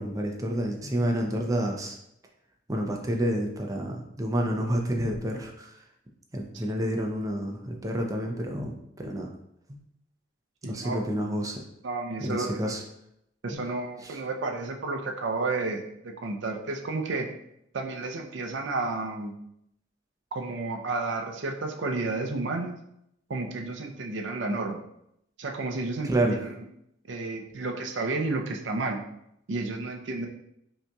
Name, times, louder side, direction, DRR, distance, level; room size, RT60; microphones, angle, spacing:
voice 1, 0.0-2.0 2.7-5.8 6.3-9.3 9.7-9.8 10.6-11.6 12.2-12.8 13.5-13.6 14.0-14.2 26.0-26.4, right 1 dB, 20° right, 1 dB, 0.5 m, -29 dB
voice 2, 10.6-11.0 11.8-12.8 13.4-17.3 17.7-19.3 20.3-22.8 23.3-24.8 25.4-26.5 27.1-29.0 29.5-30.3, right 3 dB, 70° right, 3 dB, 0.5 m, -31 dB
5.3 x 2.8 x 2.3 m, 0.78 s
head